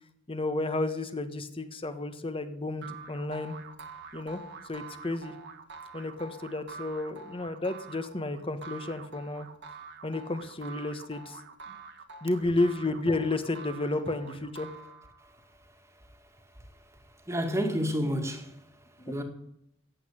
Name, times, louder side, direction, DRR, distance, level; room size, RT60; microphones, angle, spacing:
voice 1, 0.3-3.5 4.1-4.4 4.7-5.3 5.9-9.5 10.0-11.4 12.2-14.7 19.0-19.2, left 2 dB, 25° left, 1.4 m, -32 dB
sound 1, 2.8-15.3, right 4 dB, 55° right, 1.6 m, -46 dB
voice 2, 17.3-18.6 19.1-19.2, equal, 15° right, 2.0 m, -29 dB
15.5 x 8.6 x 10.0 m
head